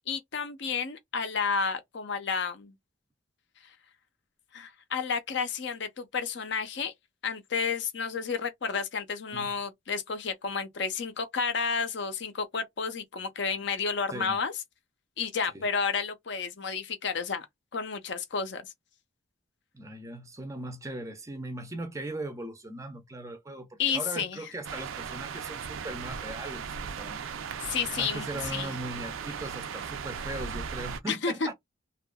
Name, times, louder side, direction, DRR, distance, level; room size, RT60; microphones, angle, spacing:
voice 1, 0.1-2.7 4.5-6.9 7.2-14.5 15.2-17.5 17.7-18.6 23.8-24.4 27.6-28.7 31.1-31.5, left 5 dB, 55° left, 0.5 m, -31 dB
voice 2, 19.7-27.2 28.0-31.5, right 1 dB, 15° right, 0.4 m, -39 dB
sound 1, 24.6-31.0, right 6 dB, 80° right, 0.4 m, -37 dB
2.7 x 2.3 x 2.2 m
head